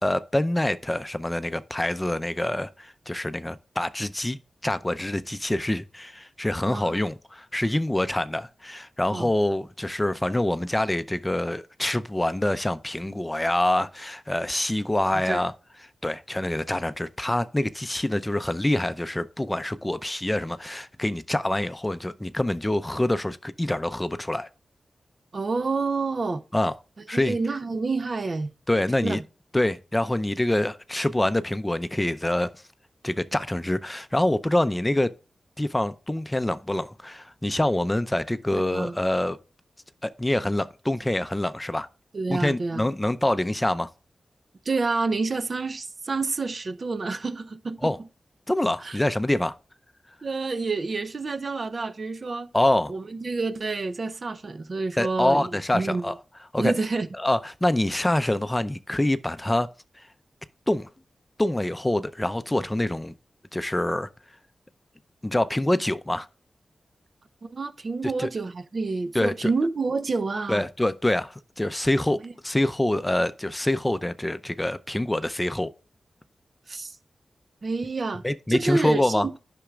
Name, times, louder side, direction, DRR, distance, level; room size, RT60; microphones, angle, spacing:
voice 1, 0.0-15.5 16.0-24.5 26.5-26.7 27.1-27.4 28.7-29.2 29.5-32.5 33.0-35.1 35.6-39.4 40.0-41.9 42.3-43.9 47.8-48.0 48.5-49.5 52.5-52.9 55.0-56.1 56.5-56.7 57.2-59.7 60.0-60.1 60.7-60.9 61.4-63.1 63.5-64.1 65.2-66.3 68.2-68.3 69.1-69.5 70.5-72.2 72.4-75.7 78.2-79.3, left 1 dB, 20° left, 0.5 m, -25 dB
voice 2, 6.7-7.0 9.1-9.3 15.1-15.4 25.3-26.4 27.1-28.5 29.0-29.2 38.5-39.0 42.1-42.9 44.7-47.9 48.8-49.0 50.2-52.5 52.9-56.0 56.6-57.1 67.5-70.7 72.2-72.3 76.7-77.0 77.6-78.2 78.5-79.3, right 3 dB, 60° right, 0.6 m, -28 dB
9.9 x 6.0 x 2.4 m
cardioid pair, 40°, 0 cm